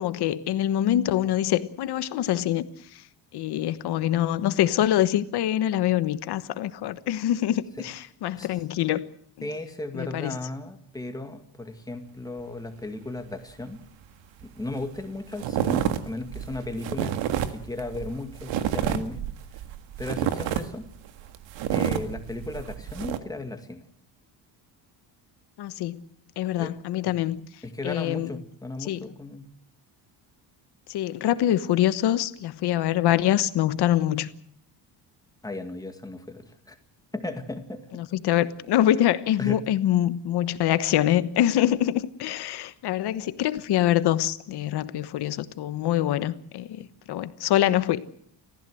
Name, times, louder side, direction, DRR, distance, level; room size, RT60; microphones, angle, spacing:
voice 1, 0.0-2.6 3.3-9.0 9.4-9.5 9.9-10.4 25.6-26.0 26.4-27.4 27.8-28.3 28.8-29.1 30.9-34.3 37.9-48.0, left 12 dB, 60° left, 1.2 m, -25 dB
voice 2, 9.4-13.8 14.4-17.2 17.5-19.3 20.0-20.9 21.7-23.8 26.6-26.7 27.6-29.5 35.4-36.8 37.1-38.0 39.4-39.6, left 2 dB, 10° left, 2.0 m, -35 dB
sound 1, 14.4-14.5 14.7-15.0 15.3-23.2, right 10 dB, 80° right, 1.9 m, -29 dB
29.5 x 15.0 x 7.8 m
cardioid pair, 165°, 45 cm